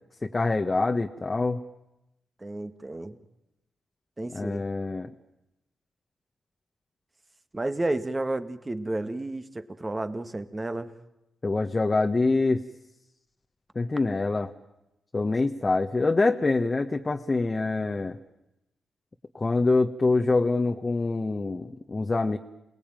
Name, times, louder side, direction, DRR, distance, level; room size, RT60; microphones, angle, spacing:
voice 1, 0.2-1.6 4.3-5.1 11.4-12.6 13.7-14.5 15.1-18.2 19.3-22.4, left 3 dB, 35° left, 4 dB, 1.5 m, -25 dB
voice 2, 2.4-3.2 4.2-4.6 7.5-10.9, right 2 dB, 25° right, 9 dB, 2.1 m, -31 dB
28.5 x 19.0 x 9.2 m, 0.92 s
supercardioid pair, 40°, 0 cm